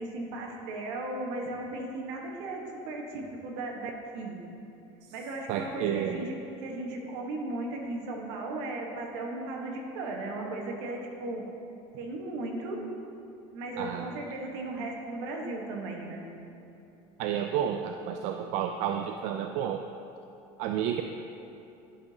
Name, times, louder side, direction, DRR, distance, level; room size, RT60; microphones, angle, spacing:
voice 1, 0.0-4.4 5.1-11.4 11.9-12.9 13.5-16.2, right 2 dB, 80° right, 0 dB, 1.4 m, -36 dB
voice 2, 5.5-6.2 13.8-14.1 17.2-19.8 20.6-21.0, right 9 dB, 65° right, 5 dB, 0.4 m, -31 dB
12.0 x 5.8 x 2.9 m, 2.9 s
supercardioid pair, 125°, 13 cm